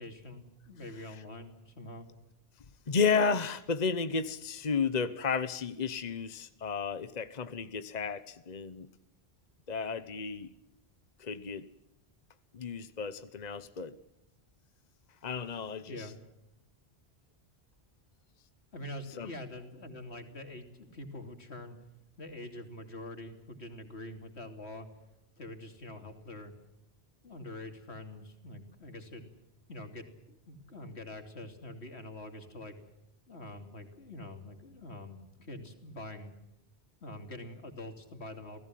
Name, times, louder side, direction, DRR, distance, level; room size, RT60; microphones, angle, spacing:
voice 1, 0.0-2.1 15.9-16.2 18.7-21.8 22.2-24.9 25.4-26.5 27.2-29.3 29.7-32.8 33.3-36.3 37.0-38.6, left 1 dB, 85° left, 6 dB, 3.3 m, -45 dB
voice 2, 2.9-8.9 9.7-10.5 11.2-11.7 12.5-13.9 15.2-16.1 19.2-19.3, left 5 dB, 40° left, 12 dB, 1.1 m, -32 dB
28.5 x 18.5 x 7.7 m, 0.87 s
omnidirectional pair, 1.1 m